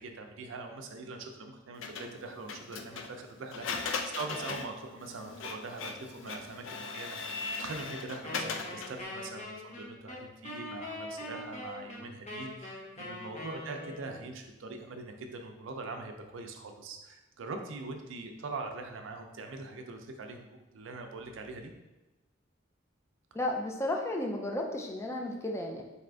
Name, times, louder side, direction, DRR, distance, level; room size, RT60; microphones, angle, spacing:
voice 1, 0.0-21.7, right 3 dB, 90° right, 4 dB, 0.5 m, -42 dB
Printer, 1.8-9.0, left 4 dB, 85° left, 0.4 m, -39 dB
Wind instrument woodwind instrument, 8.2-14.3, left 1 dB, 35° left, 0.8 m, -42 dB
voice 2, 23.3-25.8, left 1 dB, 15° left, 1 dB, 0.4 m, -33 dB
4.1 x 2.5 x 3.3 m, 1.0 s
head